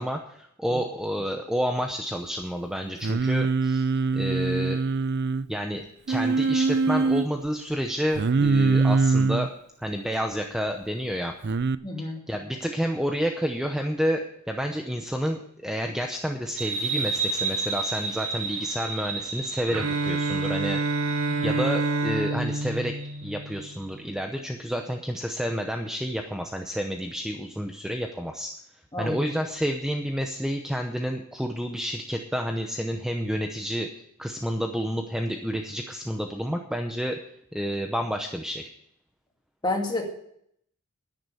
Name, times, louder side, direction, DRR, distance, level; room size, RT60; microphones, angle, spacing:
voice 1, 0.0-4.8 5.5-9.5 9.8-11.3 12.0-20.8 21.4-23.0 23.2-28.5 29.0-33.9 34.2-37.2 37.5-38.7, equal, 5° right, 4 dB, 0.8 m, -30 dB
Singing, 3.0-5.5 6.1-7.3 8.2-9.5 11.4-11.8, right 4 dB, 50° right, 0.5 m, -23 dB
voice 2, 11.8-12.2 21.3-21.6 28.9-29.2 39.6-40.0, left 2 dB, 20° left, 1 dB, 2.2 m, -29 dB
sound 1, 16.6-23.8, right 4 dB, 85° right, 5.0 m, -33 dB
Bowed string instrument, 19.7-23.8, right 3 dB, 65° right, 1.0 m, -28 dB
11.0 x 9.8 x 6.8 m, 0.71 s
head